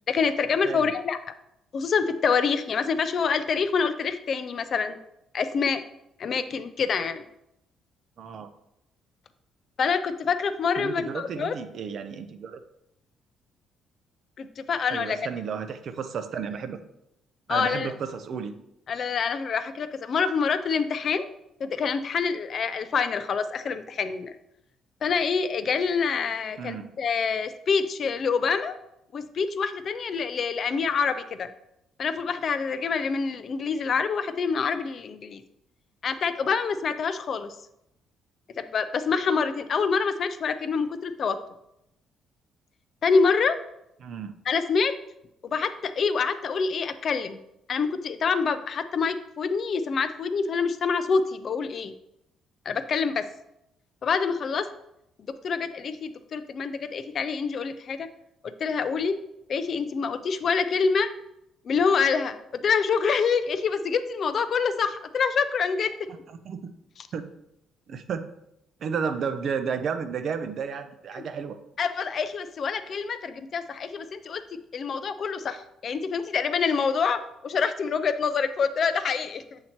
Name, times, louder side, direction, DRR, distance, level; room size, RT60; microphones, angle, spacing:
voice 1, 0.1-1.2 1.7-5.0 5.3-5.8 6.2-7.2 9.8-11.6 14.4-15.2 17.5-17.9 18.9-21.3 21.6-24.4 25.0-28.8 29.1-31.5 32.0-35.4 36.0-37.6 38.6-41.4 43.0-43.6 44.5-44.9 45.4-47.4 47.7-51.9 52.7-53.2 54.0-54.6 55.4-58.1 58.4-59.1 59.5-61.1 61.6-66.0 71.8-74.4 74.7-79.6, left 5 dB, 40° left, 11 dB, 0.3 m, -26 dB
voice 2, 8.2-8.5 10.8-12.6 14.9-16.8 17.5-18.5 26.6-26.9 44.0-44.3 66.4-66.7 67.1-67.3 67.9-68.3 68.8-71.6, right 6 dB, 50° right, 9 dB, 0.5 m, -32 dB
7.6 x 2.8 x 4.4 m, 0.83 s
cardioid pair, 155°, 0 cm